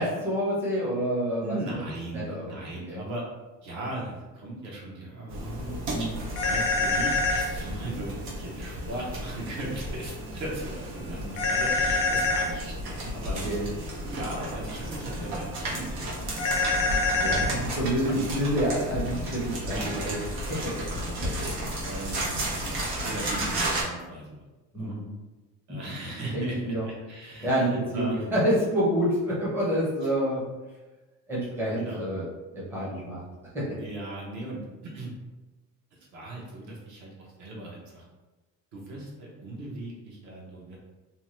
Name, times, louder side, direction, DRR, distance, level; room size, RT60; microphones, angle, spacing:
voice 1, 0.0-1.6 2.1-2.6 2.9-3.0 5.9-6.2 11.2-11.4 13.4-13.6 17.2-20.2 20.5-20.7 21.2-21.5 24.7-25.0 26.3-26.9 27.4-30.4 31.3-32.2 32.5-33.2 33.5-33.8, equal, 5° right, -8 dB, 0.6 m, -28 dB
voice 2, 1.4-3.2 3.6-5.8 6.4-13.4 14.0-16.5 18.0-18.2 19.7-19.8 20.5-20.6 21.0-21.2 21.8-22.5 23.0-24.4 24.8-25.0 25.7-28.3 31.8-32.0 33.8-35.1 36.1-38.0 38.7-40.8, right 2 dB, 55° right, -3 dB, 0.8 m, -38 dB
sound 1, 5.3-23.8, right 1 dB, 90° right, 1.1 m, -33 dB
sound 2, 6.4-7.5 11.4-12.5 16.4-17.5, left 3 dB, 55° left, 0.5 m, -25 dB
2.7 x 2.2 x 3.0 m, 1.1 s
cardioid pair, 170°, 36 cm